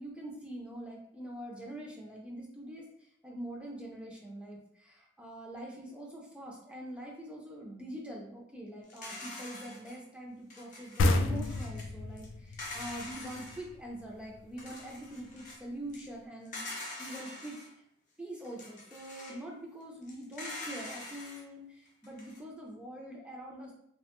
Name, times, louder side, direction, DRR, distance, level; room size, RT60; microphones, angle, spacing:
voice 1, 0.0-17.6 18.2-23.7, right 1 dB, 5° right, -2 dB, 0.4 m, -44 dB
sound 1, 8.9-10.0 10.5-11.9 12.2-12.3 12.5-13.7 14.1-14.2 14.6-15.6 15.9-16.1 16.4-17.7 18.4-19.4 20.0-21.4 21.9-22.4, left 2 dB, 40° left, 0.6 m, -44 dB
sound 2, 11.0-14.4, left 2 dB, 85° left, 0.3 m, -30 dB
2.8 x 2.1 x 2.9 m, 0.72 s
head